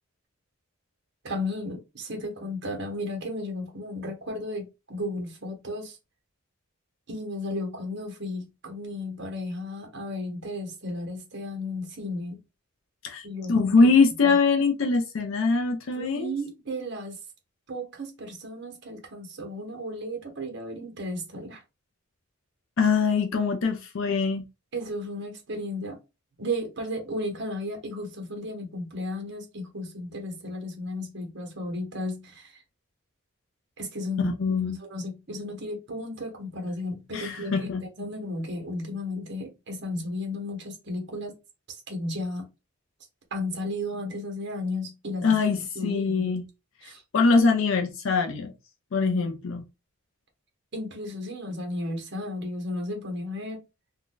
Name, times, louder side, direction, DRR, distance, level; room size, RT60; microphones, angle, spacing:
voice 1, 1.2-6.0 7.1-12.4 13.2-13.9 14.2-14.3 15.9-17.2 17.7-21.6 24.7-26.0 26.4-32.6 33.8-34.3 34.8-37.7 38.0-41.3 41.7-42.5 43.3-46.4 46.8-47.0 50.7-53.6, left 1 dB, 55° right, 1.0 m, -34 dB
voice 2, 13.0-16.3 22.8-24.4 34.2-34.8 37.1-37.8 45.2-46.4 46.8-48.5 48.9-49.6, left 4 dB, 60° left, 0.4 m, -23 dB
2.5 x 2.2 x 3.7 m
head